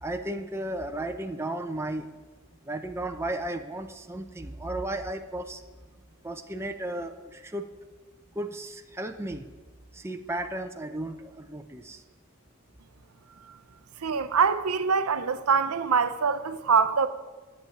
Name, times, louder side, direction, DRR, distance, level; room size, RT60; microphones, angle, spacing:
voice 1, 0.0-2.1 2.6-5.6 6.2-7.7 8.4-9.5 9.9-12.0, right 1 dB, 10° right, 0.7 m, -34 dB
voice 2, 14.0-17.1, right 5 dB, 80° right, 0.7 m, -24 dB
9.9 x 7.4 x 9.1 m
head